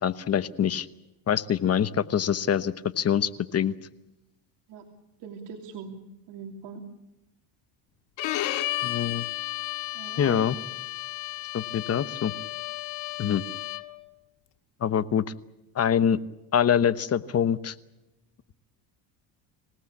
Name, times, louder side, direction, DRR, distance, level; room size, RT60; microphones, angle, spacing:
voice 1, 0.0-0.9 1.3-3.7 8.8-9.2 10.2-10.5 11.5-12.3 13.2-13.4 14.8-15.2 15.7-16.2 16.5-17.7, left 8 dB, 35° left, 14 dB, 1.0 m, -24 dB
voice 2, 5.2-6.0 6.3-6.8 9.9-10.5, right 6 dB, 65° right, 1 dB, 3.1 m, -41 dB
Bowed string instrument, 8.2-14.0, left 16 dB, 70° left, 1.8 m, -33 dB
26.5 x 18.0 x 8.5 m, 0.98 s
cardioid pair, 115°, 46 cm